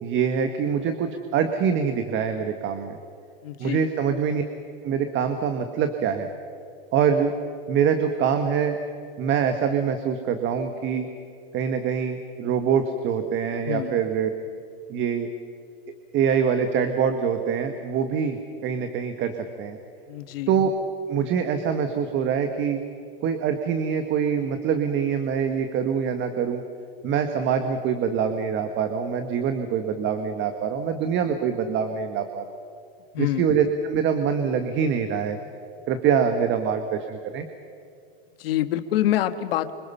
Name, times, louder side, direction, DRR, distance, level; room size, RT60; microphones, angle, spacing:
voice 1, 0.0-3.0 3.6-4.4 4.8-6.3 6.9-7.3 7.7-8.8 9.2-11.1 11.5-14.3 14.9-15.3 16.1-19.3 19.6-19.8 20.5-20.7 21.1-22.8 23.2-26.6 27.0-32.6 33.2-35.4 35.9-37.5, right 7 dB, 40° right, 7 dB, 1.7 m, -24 dB
voice 2, 3.4-3.9 13.7-14.0 20.1-20.6 33.1-33.5 38.4-39.7, left 13 dB, 75° left, 10 dB, 1.6 m, -26 dB
28.5 x 26.0 x 5.7 m, 2.4 s
supercardioid pair, 130°, 29 cm